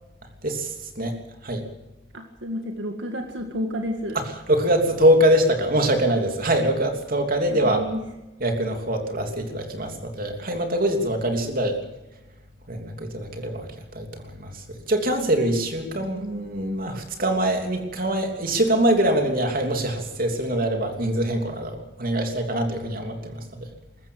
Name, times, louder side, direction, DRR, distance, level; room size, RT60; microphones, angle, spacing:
voice 1, 0.4-1.7 4.1-7.8 8.4-11.8 12.7-23.7, right 1 dB, 50° right, 5 dB, 3.2 m, -24 dB
voice 2, 2.1-4.2 7.5-8.0, equal, 75° right, 4 dB, 2.0 m, -30 dB
22.0 x 14.0 x 8.8 m, 1.0 s
head